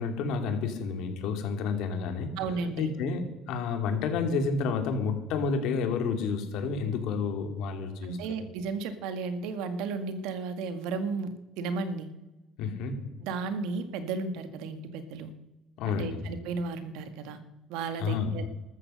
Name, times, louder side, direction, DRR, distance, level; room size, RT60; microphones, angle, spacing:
voice 1, 0.0-2.3 2.8-8.2 12.6-13.0 15.8-16.2 18.0-18.3, left 5 dB, 80° left, 6 dB, 3.0 m, -30 dB
voice 2, 2.4-2.9 8.0-12.1 13.2-15.3 15.9-17.4 17.7-18.5, right 4 dB, 85° right, 10 dB, 1.8 m, -34 dB
13.5 x 13.5 x 6.5 m, 1.0 s
cardioid pair, 100°, 0 cm